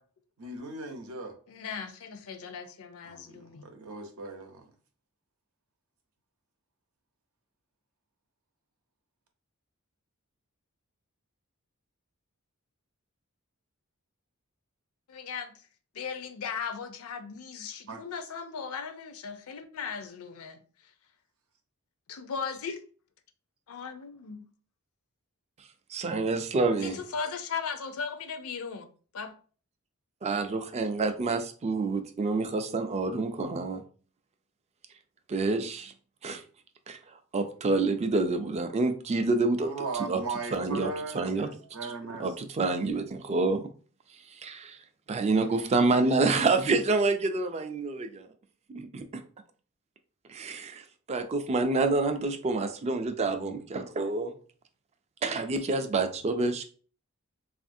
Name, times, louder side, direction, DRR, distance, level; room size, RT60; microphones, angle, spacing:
voice 1, 0.4-1.4 3.0-4.7 17.9-18.0 39.6-42.3, right 3 dB, 70° right, 0.7 m, -38 dB
voice 2, 1.5-3.6 15.1-15.6 15.9-20.6 22.1-22.8 23.7-24.4 26.8-29.3, left 6 dB, 70° left, 0.4 m, -37 dB
voice 3, 25.9-27.0 30.2-33.8 35.3-35.9 36.2-36.4 36.9-37.0 37.3-39.7 40.1-40.2 40.5-40.9 41.1-41.5 41.8-41.9 42.2-43.7 44.4-44.8 45.1-48.3 48.7-49.2 50.3-50.8 51.1-54.4 55.2-56.7, right 3 dB, 30° right, 0.3 m, -27 dB
3.4 x 2.5 x 2.5 m
head